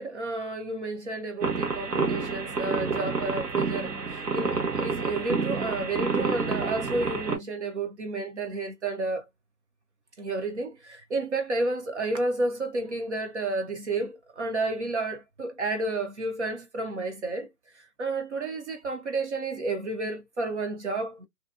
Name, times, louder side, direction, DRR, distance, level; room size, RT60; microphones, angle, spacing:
voice 1, 0.0-9.2 10.2-17.5 17.7-21.2, right 2 dB, 50° right, 0.6 m, -31 dB
sound 1, 1.4-7.4, right 4 dB, 80° right, 1.2 m, -28 dB
2.6 x 2.1 x 2.3 m
hypercardioid pair, 150°, 47 cm